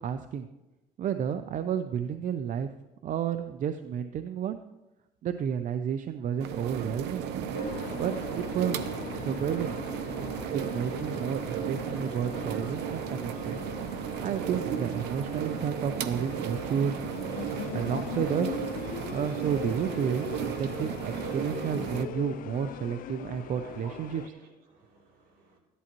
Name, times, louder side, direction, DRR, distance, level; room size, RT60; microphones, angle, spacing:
voice 1, 0.0-0.5 1.0-2.7 3.0-4.6 5.2-7.3 7.9-8.9 9.1-9.8 10.5-13.6 14.0-17.0 17.7-18.6 19.1-24.2, right 8 dB, 50° right, 10 dB, 0.5 m, -31 dB
sound 1, 6.4-22.0, right 8 dB, 85° right, 0.8 m, -34 dB
sound 2, 7.5-24.3, left 12 dB, 55° left, 0.4 m, -41 dB
voice 2, 23.3-25.6, right 3 dB, 70° right, 0 dB, 3.7 m, -53 dB
14.0 x 11.0 x 3.0 m, 1.0 s
cardioid pair, 110°, 17 cm